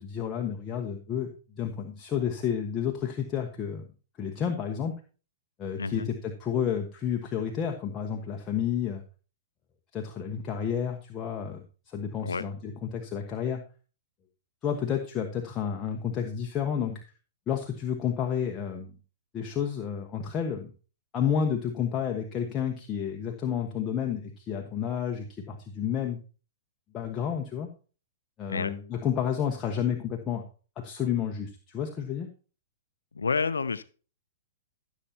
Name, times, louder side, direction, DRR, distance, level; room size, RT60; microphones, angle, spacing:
voice 1, 0.0-1.3 1.6-3.9 4.2-4.9 5.6-9.0 9.9-13.6 14.6-17.0 17.5-18.9 19.3-20.7 21.1-26.2 26.9-27.7 28.4-30.4 30.8-32.3, left 8 dB, 25° left, 2 dB, 1.3 m, -30 dB
voice 2, 5.8-6.1 12.2-12.4 28.5-28.7 33.1-33.8, left 5 dB, 85° left, 15 dB, 0.6 m, -29 dB
14.5 x 7.2 x 2.8 m, 0.36 s
hypercardioid pair, 115°, 0 cm